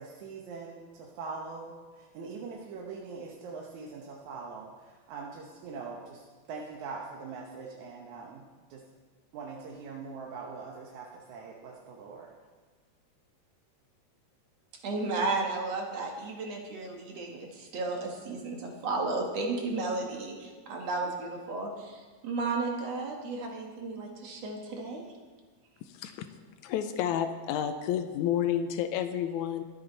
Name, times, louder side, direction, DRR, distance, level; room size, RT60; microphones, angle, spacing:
voice 1, 0.0-8.8 9.3-12.3, right 4 dB, 80° right, 0 dB, 2.4 m, -42 dB
voice 2, 14.8-25.0, right 3 dB, 60° right, 1 dB, 2.7 m, -33 dB
voice 3, 25.8-26.3 26.6-29.6, left 9 dB, 85° left, 8 dB, 2.1 m, -30 dB
22.5 x 8.6 x 4.1 m, 1.3 s
omnidirectional pair, 3.3 m